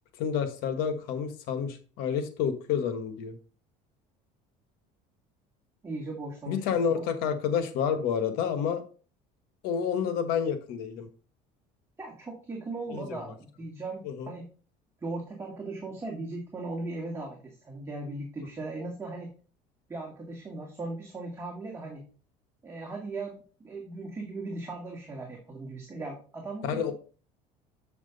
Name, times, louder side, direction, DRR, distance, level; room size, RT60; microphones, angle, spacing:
voice 1, 0.2-3.4 6.5-8.8 9.6-11.1 12.9-13.2 14.0-14.3 26.6-26.9, left 7 dB, 75° left, 9 dB, 1.2 m, -29 dB
voice 2, 5.8-7.0 12.0-14.5 15.0-19.3 19.9-22.0 22.6-26.9, right 2 dB, 15° right, -1 dB, 1.9 m, -38 dB
7.4 x 6.0 x 3.9 m, 0.38 s
cardioid pair, 115°, 16 cm